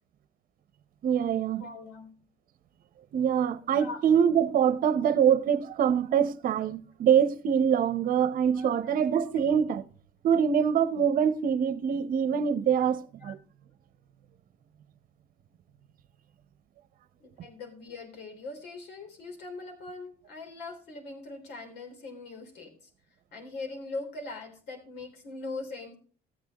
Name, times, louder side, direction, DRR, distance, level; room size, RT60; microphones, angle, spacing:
voice 1, 1.0-1.6 3.1-9.8 10.2-13.4, right 8 dB, 55° right, 0.8 m, -24 dB
voice 2, 1.6-2.2 3.8-4.0 8.5-9.2 13.2-13.3 17.2-22.9 23.3-25.9, left 3 dB, 80° left, 3.5 m, -41 dB
14.0 x 9.4 x 3.0 m
cardioid pair, 110°, 17 cm